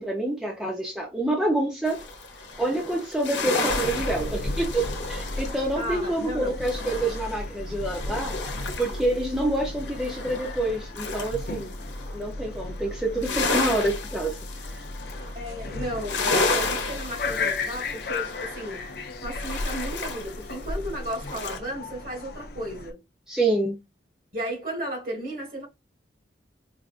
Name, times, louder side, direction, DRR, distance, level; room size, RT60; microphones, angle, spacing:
voice 1, 0.0-2.0 2.6-8.5 8.8-11.8 12.1-14.4 14.7-14.8 23.3-23.8, right 1 dB, 5° right, 0.6 m, -27 dB
sound 1, 1.8-9.1 9.4-12.2 12.5-21.6, left 3 dB, 70° left, 1.0 m, -32 dB
sound 2, 3.7-22.9, left 2 dB, 55° left, 0.5 m, -35 dB
voice 2, 5.8-6.5 15.3-18.8 19.2-23.0 24.3-25.7, equal, 50° right, 1.7 m, -34 dB
4.6 x 2.4 x 2.4 m
head